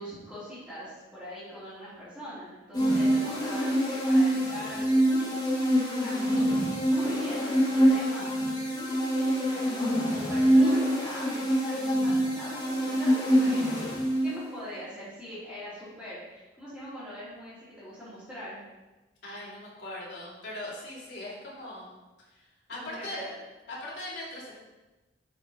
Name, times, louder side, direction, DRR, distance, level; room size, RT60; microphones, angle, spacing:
voice 1, 0.0-6.5 6.9-8.3 9.1-18.6 22.7-23.3, equal, ahead, -16 dB, 3.0 m, -42 dB
sound 1, 2.7-14.5, equal, 25° left, 1.8 m, -25 dB
voice 2, 19.2-22.0 22.3-23.4 23.7-24.6, left 1 dB, 80° left, -6 dB, 3.1 m, -40 dB
9.4 x 5.7 x 4.1 m, 1.1 s
head